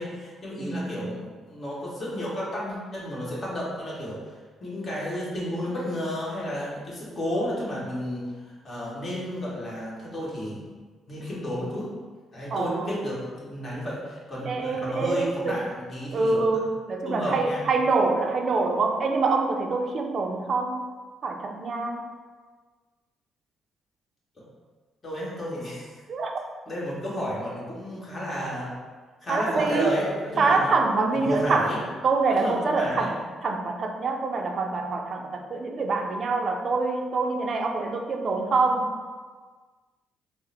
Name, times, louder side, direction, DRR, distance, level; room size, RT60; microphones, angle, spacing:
voice 1, 0.0-4.2 4.6-10.7 11.1-11.9 12.3-16.4 17.1-17.6 24.4-24.5 25.0-25.9 26.7-28.7 29.2-30.7 31.1-31.8 32.4-33.1, equal, 35° left, -6 dB, 1.3 m, -32 dB
voice 2, 0.6-1.1 12.5-12.9 14.5-15.7 16.1-20.8 21.2-22.1 26.1-26.3 29.3-30.0 30.4-31.7 32.0-38.9, right 3 dB, 50° right, 4 dB, 0.4 m, -25 dB
3.7 x 2.0 x 4.0 m, 1.4 s
cardioid pair, 90°, 0 cm